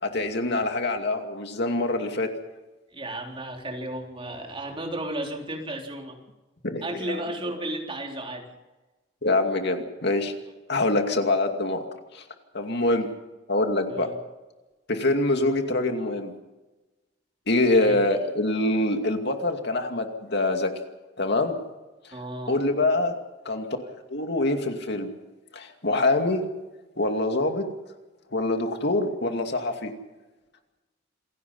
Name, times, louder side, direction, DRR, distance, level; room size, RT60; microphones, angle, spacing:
voice 1, 0.0-2.3 6.6-7.2 9.2-10.3 10.7-11.8 12.1-12.2 12.5-13.1 13.5-14.1 14.9-16.3 17.5-20.7 21.2-21.6 22.5-23.2 23.4-23.7 24.1-25.1 25.5-26.4 27.0-27.7 28.3-29.9, left 2 dB, 60° left, 5 dB, 2.5 m, -25 dB
voice 2, 2.9-6.2 6.8-8.5 13.9-14.1 17.7-18.0 22.1-22.5, right 1 dB, 30° right, 1 dB, 3.8 m, -34 dB
27.5 x 17.0 x 5.6 m, 1.1 s
head